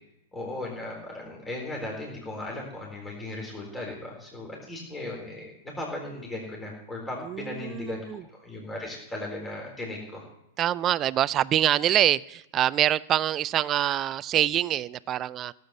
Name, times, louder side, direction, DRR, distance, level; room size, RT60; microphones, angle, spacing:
voice 1, 0.3-5.5 5.8-8.0 8.3-10.2, left 2 dB, 10° left, -2 dB, 4.0 m, -37 dB
voice 2, 7.2-8.2 10.6-15.5, right 11 dB, 30° right, 20 dB, 0.4 m, -25 dB
16.5 x 7.9 x 7.2 m, 0.86 s
figure-of-eight pair, 100°, 0 cm